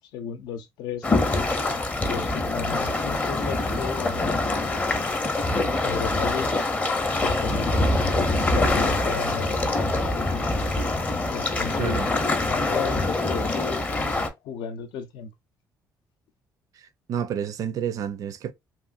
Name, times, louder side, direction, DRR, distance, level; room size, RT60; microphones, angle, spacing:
voice 1, 0.1-1.1 2.0-4.6 5.8-6.6 7.2-8.1 8.4-10.2 11.3-13.9 14.4-15.3, left 7 dB, 80° left, 0.5 m, -34 dB
sound 1, 1.0-14.3, left 2 dB, 20° left, 0.6 m, -24 dB
voice 2, 11.8-12.1 16.8-18.5, right 8 dB, 55° right, 0.5 m, -30 dB
3.0 x 2.5 x 2.4 m
cardioid pair, 135°, 7 cm